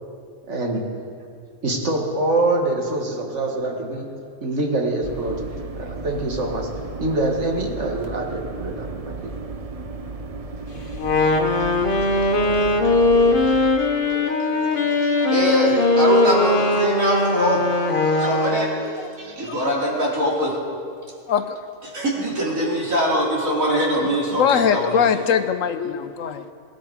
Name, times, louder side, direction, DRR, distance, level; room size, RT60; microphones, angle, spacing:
voice 1, 0.5-0.8 1.6-4.1 4.4-5.4 5.7-6.7 7.0-9.3 11.6-15.4 15.8-16.0 16.7-16.9 18.0-18.4 19.2-19.6, right 2 dB, 60° right, 1 dB, 2.1 m, -27 dB
sound 1, 5.0-13.7, right 3 dB, 40° right, 0.5 m, -34 dB
Wind instrument woodwind instrument, 10.9-18.9, left 2 dB, 45° left, 1.2 m, -20 dB
voice 2, 15.3-17.6 18.2-18.7 19.4-20.6 21.9-25.0, equal, 80° right, -4 dB, 3.5 m, -22 dB
voice 3, 21.3-21.6 24.4-26.5, left 7 dB, 75° left, 10 dB, 1.1 m, -21 dB
18.0 x 12.5 x 4.8 m, 2.3 s
omnidirectional pair, 1.4 m